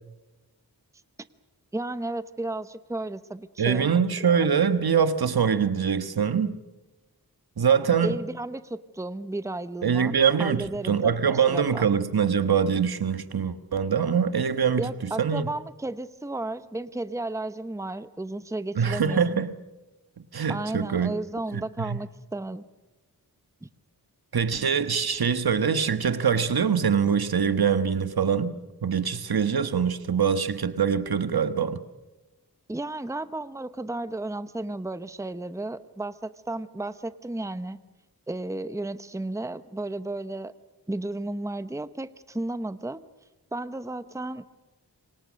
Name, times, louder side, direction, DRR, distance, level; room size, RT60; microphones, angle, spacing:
voice 1, 1.7-4.0 8.0-11.9 14.8-19.4 20.5-22.6 23.6-23.7 32.7-37.8 38.3-40.5 40.9-43.0 43.5-44.5, right 2 dB, 10° right, 0.9 m, -33 dB
voice 2, 3.6-6.6 7.6-8.2 9.8-15.5 18.7-19.5 20.3-21.1 21.5-22.0 24.3-28.6 28.8-31.8, right 7 dB, 70° right, 1.4 m, -24 dB
27.0 x 25.0 x 6.4 m
wide cardioid pair, 80°, 38 cm